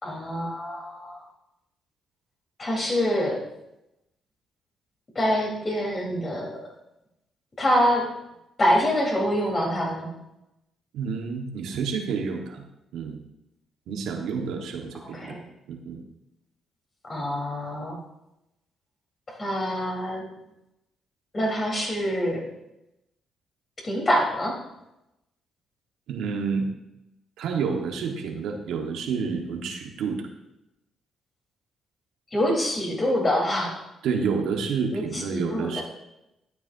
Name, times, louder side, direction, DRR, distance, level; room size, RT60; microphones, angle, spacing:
voice 1, 0.0-1.2 2.6-3.4 5.2-6.6 7.6-8.1 8.6-10.1 15.0-15.4 17.1-18.0 19.4-20.3 21.3-22.4 23.8-24.6 32.3-33.8 34.9-35.8, equal, 30° left, -2 dB, 3.7 m, -25 dB
voice 2, 10.9-12.6 12.9-13.2 13.9-15.3 15.7-16.0 26.1-26.7 27.4-30.3 34.0-35.8, right 5 dB, 80° right, 3 dB, 1.4 m, -29 dB
12.0 x 9.5 x 2.7 m, 0.90 s
cardioid pair, 90°, 0 cm